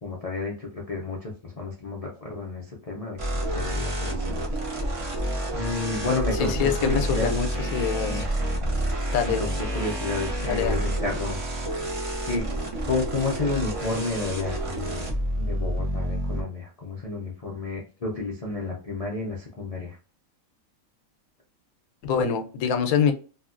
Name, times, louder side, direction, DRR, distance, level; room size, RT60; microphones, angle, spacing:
voice 1, 0.0-4.4 5.5-7.3 8.1-8.3 9.4-11.4 12.3-12.5 12.9-15.1 15.4-20.0, left 3 dB, 55° left, -3 dB, 0.4 m, -31 dB
sound 1, 3.2-16.4, right 1 dB, 40° right, 0.4 m, -29 dB
voice 2, 6.4-8.3 9.1-9.4 10.4-10.8 22.0-23.1, left 7 dB, 85° left, 6 dB, 1.1 m, -25 dB
2.9 x 2.7 x 2.4 m, 0.37 s
omnidirectional pair, 1.5 m